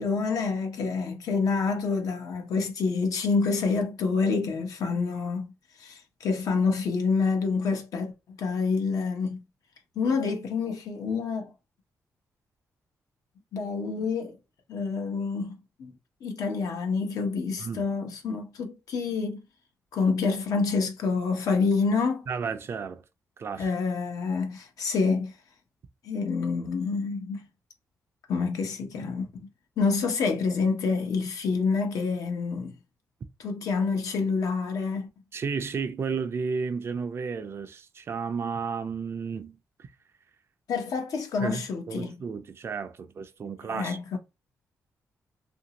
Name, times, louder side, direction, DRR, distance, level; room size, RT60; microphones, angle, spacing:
voice 1, 0.0-9.4 9.9-11.5 13.5-14.4 14.7-19.4 19.9-22.3 23.6-25.4 26.0-27.5 28.3-29.5 29.8-32.7 33.4-35.1 40.7-42.2 43.7-44.2, left 4 dB, 80° left, 0.8 m, -27 dB
voice 2, 22.3-23.0 23.4-23.7 35.3-39.9 41.4-41.6 41.9-44.2, right 5 dB, 45° right, 0.4 m, -33 dB
2.8 x 2.6 x 2.9 m
cardioid pair, 115°, 6 cm